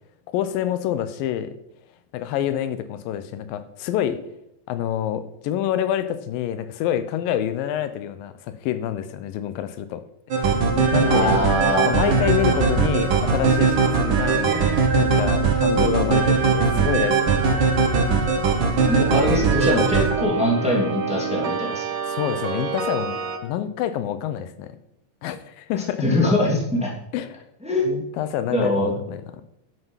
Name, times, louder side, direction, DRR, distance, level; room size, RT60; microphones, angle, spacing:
voice 1, 0.3-1.6 2.1-4.3 4.7-10.5 10.9-11.3 11.8-14.6 15.0-17.4 22.1-24.8 25.2-26.0 27.1-27.4 27.8-29.4, left 10 dB, 80° left, 12 dB, 2.4 m, -27 dB
sound 1, 10.3-23.4, right 4 dB, 55° right, 1.4 m, -21 dB
voice 2, 11.0-12.2 18.8-21.8 26.0-26.9 27.6-27.8 28.5-28.9, left 1 dB, ahead, -2 dB, 2.0 m, -22 dB
11.0 x 8.1 x 5.7 m, 0.81 s
omnidirectional pair, 4.1 m